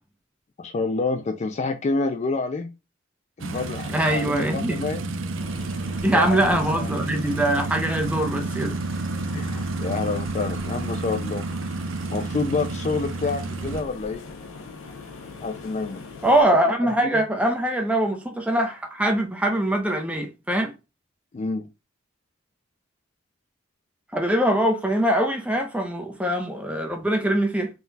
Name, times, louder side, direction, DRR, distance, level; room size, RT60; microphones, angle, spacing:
voice 1, 0.6-2.7 3.4-5.1 6.1-6.9 9.3-11.4 12.1-14.2 15.4-16.0 16.8-17.2 21.3-21.7, left 3 dB, 35° left, 0.3 m, -28 dB
sound 1, 3.4-13.8, right 3 dB, 65° right, 0.5 m, -30 dB
voice 2, 3.9-4.8 6.0-8.8 16.2-20.7 24.1-27.7, right 1 dB, 5° right, 0.7 m, -23 dB
sound 2, 5.4-16.4, left 3 dB, 85° left, 0.8 m, -42 dB
3.9 x 2.3 x 3.9 m
head